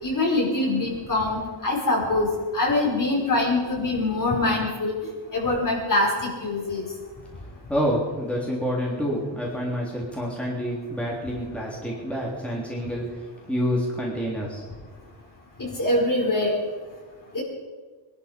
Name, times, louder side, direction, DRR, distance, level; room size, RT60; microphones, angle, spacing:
voice 1, 0.0-4.9 5.3-6.9 15.6-16.5 17.3-17.4, left 2 dB, 45° left, -3 dB, 5.2 m, -24 dB
voice 2, 7.7-14.6, equal, 5° left, -4 dB, 3.4 m, -28 dB
21.5 x 12.0 x 5.3 m, 1.4 s
wide cardioid pair, 110°, 46 cm